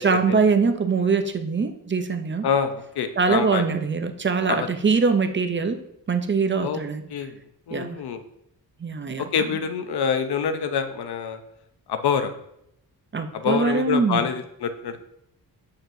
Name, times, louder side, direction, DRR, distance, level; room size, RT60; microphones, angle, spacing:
voice 1, 0.0-2.5 3.2-5.8 6.1-7.0 7.7-8.0 8.8-9.6 13.1-14.3, right 5 dB, 30° right, 7 dB, 0.6 m, -23 dB
voice 2, 2.4-3.6 4.5-4.7 6.6-6.8 7.1-7.4 7.7-8.2 9.2-11.4 11.9-12.3 13.3-15.0, left 7 dB, 80° left, 8 dB, 0.7 m, -26 dB
7.7 x 6.7 x 2.7 m, 0.77 s
wide cardioid pair, 120°, 38 cm